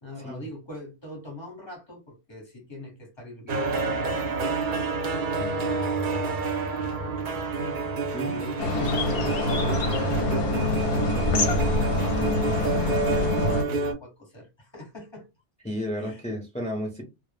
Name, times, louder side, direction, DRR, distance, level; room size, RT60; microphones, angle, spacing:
voice 1, 0.0-6.4 7.5-7.7 8.2-15.3 16.0-16.4, left 2 dB, 25° left, 0.7 m, -42 dB
sound 1, 3.5-13.9, right 3 dB, 55° right, 0.6 m, -28 dB
sound 2, 8.6-13.6, left 2 dB, 60° left, 0.7 m, -25 dB
voice 2, 15.6-17.0, equal, 10° left, 0.3 m, -32 dB
2.1 x 2.0 x 3.1 m
omnidirectional pair, 1.2 m